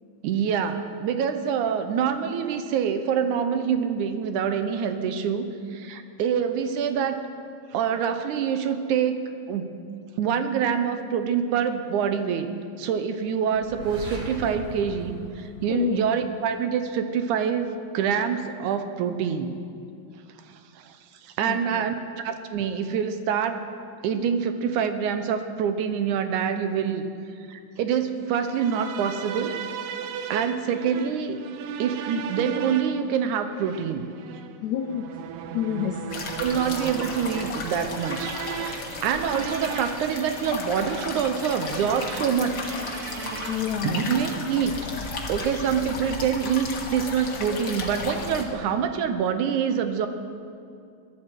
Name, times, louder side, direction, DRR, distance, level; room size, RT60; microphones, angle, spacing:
voice 1, 0.2-7.2 7.7-9.8 10.2-12.5 12.8-19.5 20.5-21.0 21.2-21.9 22.2-23.6 24.0-27.1 27.5-29.6 30.3-31.4 31.8-34.1 36.4-38.3 38.6-42.8 43.8-44.7 45.3-50.1, right 7 dB, 75° right, 8 dB, 2.1 m, -26 dB
sound 1, 13.5-16.4, right 2 dB, 35° right, 2.1 m, -39 dB
voice 2, 15.7-16.0 21.5-21.9 34.6-35.2 35.5-36.1 43.5-44.1, left 9 dB, 80° left, 4 dB, 1.6 m, -29 dB
sound 2, 28.4-43.9, right 8 dB, 90° right, 2.4 m, -37 dB
sound 3, 36.1-48.4, left 3 dB, 45° left, 1.6 m, -34 dB
22.5 x 12.5 x 4.5 m, 2.4 s
omnidirectional pair, 3.9 m